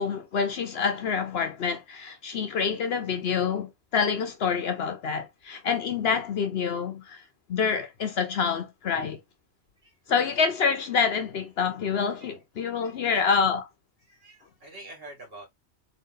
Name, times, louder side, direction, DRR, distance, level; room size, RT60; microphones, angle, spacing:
voice 1, 0.0-7.2 7.5-9.2 10.1-13.6, left 6 dB, 60° left, 0.8 m, -27 dB
voice 2, 9.8-10.4 12.2-12.3 12.8-13.4 14.0-15.5, right 1 dB, 50° right, 2.3 m, -47 dB
3.9 x 2.7 x 3.7 m
omnidirectional pair, 1.3 m